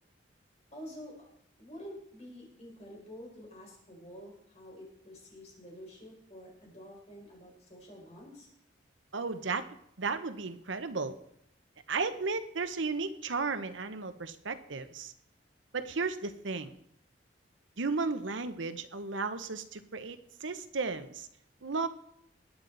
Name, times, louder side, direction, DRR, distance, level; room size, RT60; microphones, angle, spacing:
voice 1, 0.7-1.3 1.6-8.5, equal, 35° left, -1 dB, 4.8 m, -48 dB
voice 2, 9.1-9.7 10.0-11.2 11.9-15.1 15.7-16.7 17.8-21.3 21.6-21.9, right 4 dB, 90° right, 11 dB, 0.9 m, -34 dB
20.0 x 9.2 x 4.0 m, 0.73 s
head